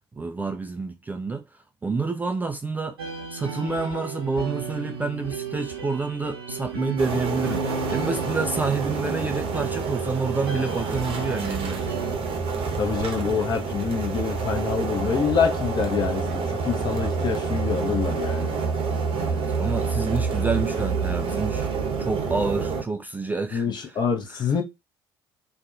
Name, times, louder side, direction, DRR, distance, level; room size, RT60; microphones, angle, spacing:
voice 1, 0.1-3.0 3.3-7.7 7.9-12.0 19.1-21.7 22.0-24.0 24.3-24.4, right 4 dB, 15° right, 0.3 m, -28 dB
sound 1, 3.0-12.2, right 4 dB, 80° right, 0.6 m, -34 dB
sound 2, 7.0-22.8, right 5 dB, 45° right, 0.8 m, -28 dB
voice 2, 12.8-18.5 23.5-24.6, left 6 dB, 35° left, 0.7 m, -26 dB
2.6 x 2.2 x 2.4 m
figure-of-eight pair, 55°, 12 cm